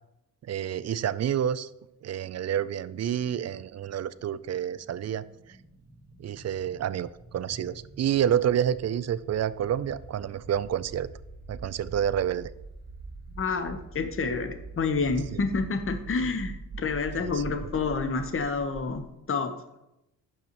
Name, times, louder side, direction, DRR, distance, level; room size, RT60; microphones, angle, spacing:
voice 1, 0.4-1.7 2.0-5.2 6.2-11.1 11.5-12.5 15.3-15.4 17.2-17.5, right 9 dB, 40° right, 16 dB, 0.4 m, -29 dB
sound 1, 4.1-19.1, right 3 dB, 20° right, 2.1 m, -44 dB
voice 2, 13.4-19.6, left 4 dB, 30° left, 8 dB, 0.9 m, -29 dB
8.3 x 6.5 x 3.0 m, 0.89 s
supercardioid pair, 55°, 42 cm